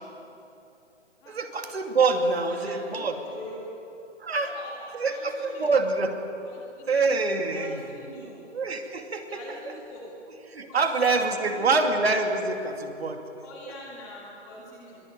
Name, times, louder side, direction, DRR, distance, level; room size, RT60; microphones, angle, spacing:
voice 1, 1.3-3.2 4.2-4.5 4.9-6.2 6.9-7.9 8.5-9.4 9.7-9.8 10.5-13.2, right 3 dB, 55° right, 5 dB, 2.6 m, -25 dB
voice 2, 2.4-3.7 4.3-5.7 6.4-7.0 7.5-8.4 9.3-10.1 10.7-11.8 13.4-15.0, left 1 dB, 10° left, -4 dB, 1.8 m, -44 dB
22.5 x 18.5 x 9.2 m, 2.7 s
hypercardioid pair, 175°, 37 cm